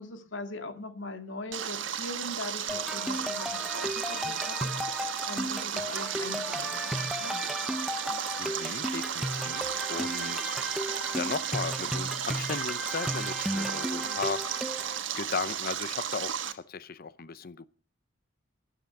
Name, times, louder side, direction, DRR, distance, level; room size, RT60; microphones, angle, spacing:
voice 1, 0.0-7.4 13.9-14.2, left 2 dB, 80° left, 2.1 m, -41 dB
Stream, 1.5-16.5, right 8 dB, 80° right, 1.2 m, -34 dB
sound 1, 2.7-15.0, equal, ahead, 0.6 m, -35 dB
voice 2, 8.4-14.6 15.2-17.7, left 5 dB, 50° left, 0.7 m, -36 dB
13.0 x 10.0 x 6.6 m
head